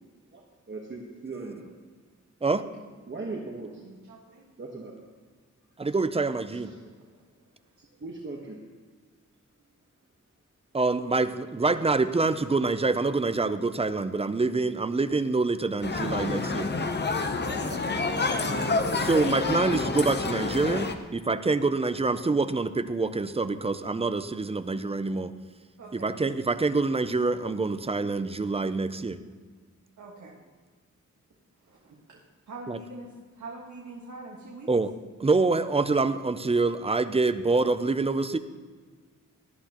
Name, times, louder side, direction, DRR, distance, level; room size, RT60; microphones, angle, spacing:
voice 1, 0.3-1.6 3.1-3.8 4.6-4.9 6.5-6.7 8.0-8.6 19.9-20.1, right 3 dB, 40° right, -1 dB, 1.2 m, -39 dB
voice 2, 3.8-4.5 6.7-7.1 17.3-18.3 25.8-26.2 30.0-30.4 31.6-32.2 32.5-33.1 33.3-34.7, right 2 dB, 70° right, -4 dB, 1.7 m, -44 dB
voice 3, 5.8-6.7 10.7-16.7 19.0-25.3 25.9-29.2 32.7-32.8 34.7-34.9 35.2-38.4, right 3 dB, 20° right, 11 dB, 0.4 m, -26 dB
sound 1, 15.8-21.0, left 3 dB, 35° left, 0.8 m, -28 dB
18.0 x 11.5 x 3.0 m, 1.5 s
wide cardioid pair, 175°, 31 cm